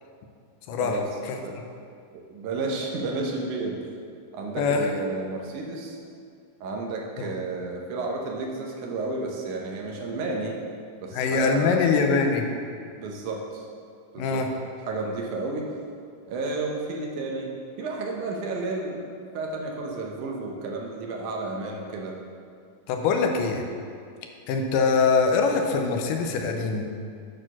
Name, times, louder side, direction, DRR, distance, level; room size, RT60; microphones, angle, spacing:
voice 1, 0.7-1.0 4.6-4.9 7.2-7.3 11.1-12.5 14.2-14.5 22.9-23.6 24.5-26.9, left 4 dB, 90° left, 3 dB, 2.3 m, -23 dB
voice 2, 2.3-3.8 4.3-6.0 6.6-10.6 11.0-11.8 13.0-13.7 14.1-14.4 14.9-15.7 16.3-17.5 17.8-19.0 19.3-22.2, right 3 dB, 75° right, 0 dB, 2.2 m, -31 dB
9.0 x 4.4 x 5.9 m, 2.3 s
omnidirectional pair, 3.8 m